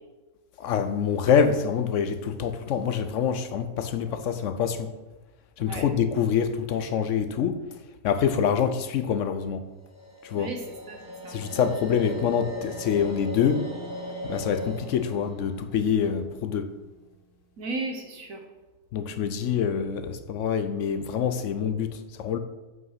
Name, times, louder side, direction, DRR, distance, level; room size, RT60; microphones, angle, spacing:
voice 1, 0.6-4.9 5.6-7.6 8.0-9.6 10.2-10.5 11.3-13.6 14.2-16.7 18.9-22.4, left 7 dB, 70° left, 9 dB, 0.8 m, -26 dB
sound 1, 9.8-17.0, equal, 10° left, 2.0 m, -39 dB
voice 2, 10.4-11.0 11.2-11.6 17.6-18.4, right 2 dB, 60° right, 2 dB, 1.4 m, -35 dB
7.7 x 5.5 x 5.7 m, 1.2 s
omnidirectional pair, 1.7 m